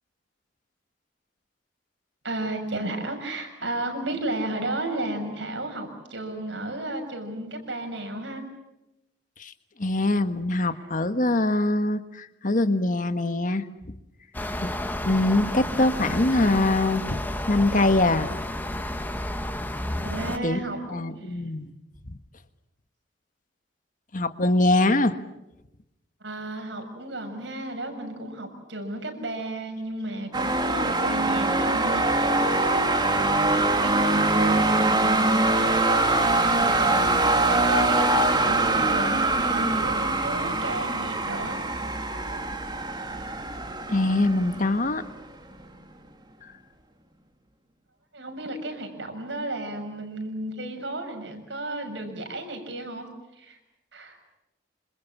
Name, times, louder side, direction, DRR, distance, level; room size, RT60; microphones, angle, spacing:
voice 1, 2.2-8.4 10.6-10.8 20.0-20.8 21.2-21.4 26.2-33.2 33.5-41.6 48.1-53.6 53.9-54.2, right 1 dB, 75° right, 6 dB, 6.8 m, -33 dB
voice 2, 9.8-13.7 14.6-14.7 15.0-17.2 17.5-18.3 20.4-20.6 20.9-21.7 22.1-22.2 24.1-25.2 43.9-45.0 46.4-46.5, left 2 dB, 45° left, 9 dB, 1.5 m, -23 dB
sound 1, 14.3-20.4, left 1 dB, 10° left, 1.5 m, -31 dB
sound 2, 30.3-45.2, right 2 dB, 25° right, 2.7 m, -23 dB
27.5 x 27.5 x 7.3 m, 0.93 s
head